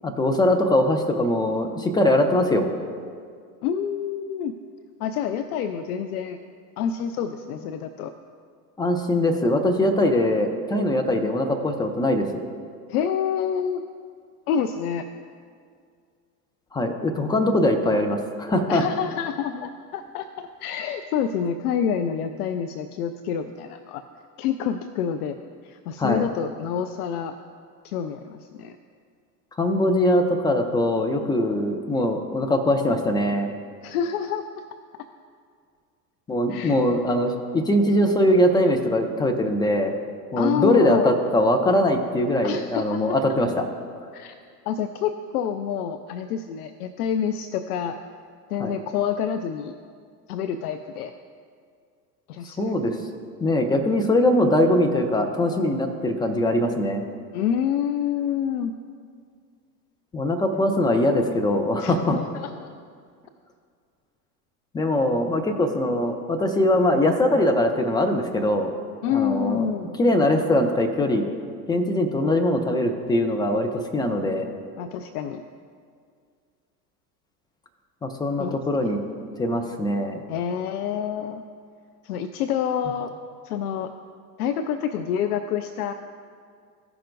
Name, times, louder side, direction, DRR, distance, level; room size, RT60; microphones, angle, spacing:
voice 1, 0.0-2.7 8.8-12.4 16.7-18.8 26.0-26.3 29.6-33.5 36.3-39.9 40.3-43.6 48.6-48.7 52.6-53.0 53.4-57.0 60.1-62.2 64.7-68.7 69.1-69.7 70.0-71.3 71.7-74.5 78.0-79.0 79.4-80.2, left 1 dB, 10° left, 4 dB, 0.3 m, -22 dB
voice 2, 3.6-4.5 5.0-6.4 6.8-8.1 12.9-13.8 14.5-15.1 18.7-24.0 24.4-25.4 25.6-27.3 27.8-28.8 33.8-34.5 36.5-36.8 40.4-41.1 42.4-43.4 44.1-44.3 44.7-48.0 48.5-49.7 50.3-51.1 52.3-52.7 57.3-58.7 61.8-62.7 69.0-69.9 74.8-75.4 78.4-78.6 80.3-81.4 82.0-83.1 83.4-83.9 84.4-85.9, left 8 dB, 65° left, 10 dB, 0.6 m, -27 dB
15.5 x 5.8 x 2.6 m, 2.1 s
hypercardioid pair, 90°, 49 cm